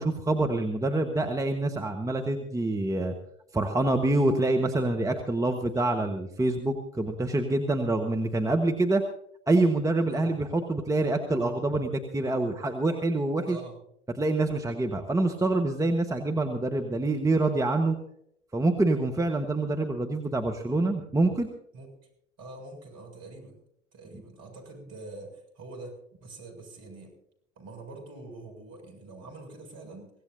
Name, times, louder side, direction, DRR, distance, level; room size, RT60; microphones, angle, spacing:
voice 1, 0.0-3.1 3.5-9.0 9.5-13.6 14.2-18.0 18.5-21.5, right 2 dB, 10° right, 3 dB, 1.4 m, -26 dB
voice 2, 13.5-13.8 21.7-21.9 22.4-23.6 23.9-27.1 27.6-30.1, right 2 dB, 45° right, 3 dB, 6.9 m, -45 dB
24.0 x 17.0 x 2.8 m, 0.71 s
figure-of-eight pair, 75°, 36 cm